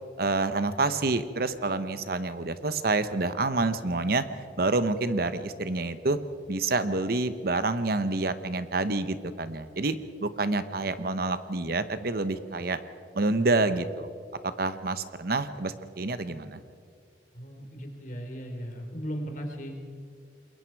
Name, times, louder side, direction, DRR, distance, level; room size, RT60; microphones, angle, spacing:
voice 1, 0.2-4.2 4.6-6.2 6.5-10.0 10.2-12.8 13.1-14.1 14.4-16.6, right 3 dB, 60° right, 12 dB, 1.0 m, -28 dB
voice 2, 17.3-19.7, equal, 50° left, 2 dB, 3.8 m, -37 dB
28.0 x 22.0 x 4.7 m, 2.1 s
head